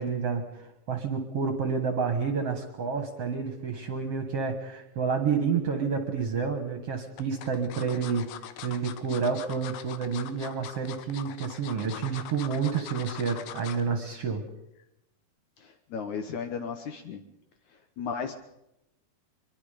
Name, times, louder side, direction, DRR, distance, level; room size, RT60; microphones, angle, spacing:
voice 1, 0.0-8.3 8.6-14.4, right 5 dB, 50° right, 7 dB, 2.0 m, -29 dB
sound 1, 5.9-6.5 7.2-13.9 14.3-14.5 14.8-14.9, left 11 dB, 90° left, 3.1 m, -42 dB
voice 2, 15.6-17.2 18.0-18.3, left 6 dB, 65° left, 7 dB, 2.1 m, -35 dB
24.5 x 22.5 x 5.2 m, 0.85 s
omnidirectional pair, 4.4 m